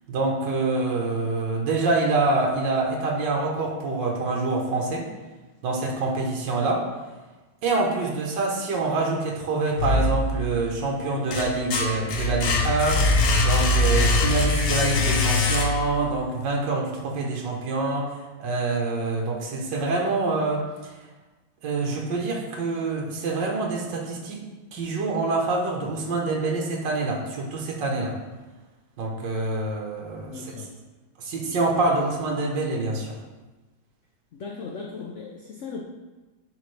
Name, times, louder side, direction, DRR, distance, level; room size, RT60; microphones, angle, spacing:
voice 1, 0.1-5.1 5.6-6.9 7.6-13.1 13.4-20.6 21.6-24.4 24.7-28.1 29.0-30.5 31.2-33.1, right 3 dB, 75° right, -1 dB, 1.6 m, -26 dB
sound 1, 9.8-10.6 11.0-16.1, left 2 dB, 60° left, 1.1 m, -22 dB
voice 2, 30.3-30.7 34.3-35.8, left 4 dB, 80° left, 1 dB, 0.6 m, -37 dB
10.5 x 3.7 x 3.2 m, 1.2 s
omnidirectional pair, 2.0 m